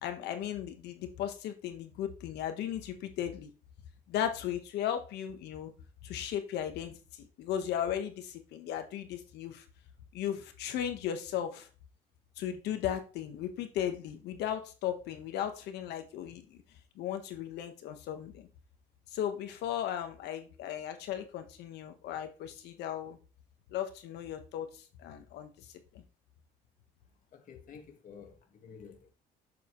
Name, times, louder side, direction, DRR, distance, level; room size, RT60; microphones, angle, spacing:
voice 1, 0.0-3.5 4.1-5.7 6.0-9.6 10.1-11.7 12.4-16.6 16.9-18.5 19.1-23.2 23.7-25.6 25.9-26.0, left 10 dB, 80° left, 1.4 m, -36 dB
voice 2, 27.3-29.1, left 6 dB, 50° left, 1.9 m, -51 dB
7.4 x 6.9 x 3.2 m
cardioid pair, 110°, 17 cm